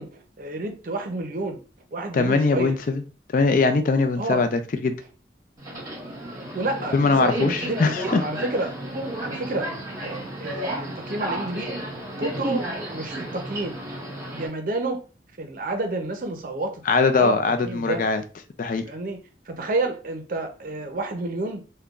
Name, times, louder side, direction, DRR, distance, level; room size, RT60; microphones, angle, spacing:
voice 1, 0.0-1.6 1.9-2.8 4.2-4.5 6.5-8.7 9.2-9.7 10.0-13.8 14.3-15.0 15.4-16.8 17.1-17.4 17.6-18.0 18.9-19.2 19.5-21.6, right 2 dB, 50° right, 5 dB, 0.6 m, -30 dB
voice 2, 2.1-3.0 3.3-4.9 6.9-8.2 16.9-18.2 18.6-18.8, left 4 dB, 50° left, 9 dB, 0.3 m, -21 dB
Subway metro underground, 5.6-14.5, right 1 dB, 20° right, 1.0 m, -32 dB
3.7 x 2.2 x 2.3 m, 0.35 s
head